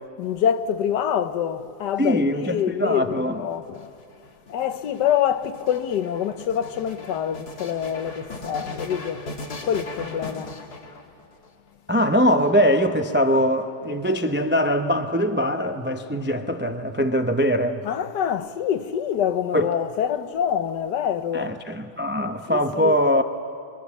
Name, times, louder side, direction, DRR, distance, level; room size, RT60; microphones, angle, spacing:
voice 1, 0.2-3.9 4.5-9.2 9.6-10.5 17.8-21.5 22.5-22.9, left 9 dB, 85° left, 1.5 m, -26 dB
voice 2, 2.0-3.4 11.9-17.8 19.5-19.7 21.3-23.2, equal, 15° right, 0.3 m, -22 dB
sound 1, 3.5-11.5 12.3-13.1, left 2 dB, 65° left, 2.3 m, -39 dB
25.5 x 25.0 x 7.2 m
omnidirectional pair, 1.8 m